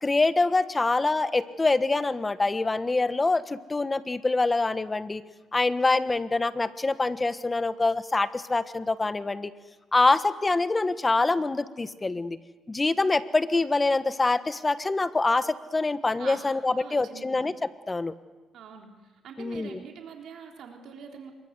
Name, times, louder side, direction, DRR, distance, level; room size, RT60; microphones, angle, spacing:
voice 1, 0.0-5.2 5.5-9.5 9.9-12.4 12.7-17.5 17.9-18.1 19.4-19.8, left 3 dB, 20° left, 12 dB, 1.3 m, -25 dB
voice 2, 16.8-17.4 18.5-18.9 19.2-21.3, right 7 dB, 75° right, 2 dB, 3.6 m, -44 dB
26.5 x 23.0 x 8.1 m, 1.2 s
cardioid pair, 90°, 0 cm